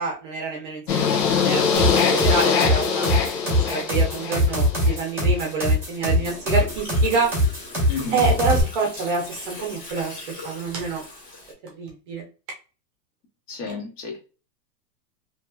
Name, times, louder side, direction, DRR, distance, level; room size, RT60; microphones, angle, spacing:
voice 1, 0.0-3.1 3.7-7.4 8.1-10.1 10.4-11.0 11.7-12.2, right 4 dB, 30° right, 0 dB, 0.6 m, -27 dB
sound 1, 0.9-5.0, left 6 dB, 90° left, 1.0 m, -22 dB
sound 2, 1.7-8.6, equal, 5° right, 1.0 m, -21 dB
Gurgling, 6.0-11.5, left 2 dB, 25° left, 0.8 m, -40 dB
voice 2, 7.9-8.2 13.5-14.2, left 3 dB, 45° left, 0 dB, 1.2 m, -31 dB
2.8 x 2.8 x 2.2 m, 0.34 s
supercardioid pair, 165°, 49 cm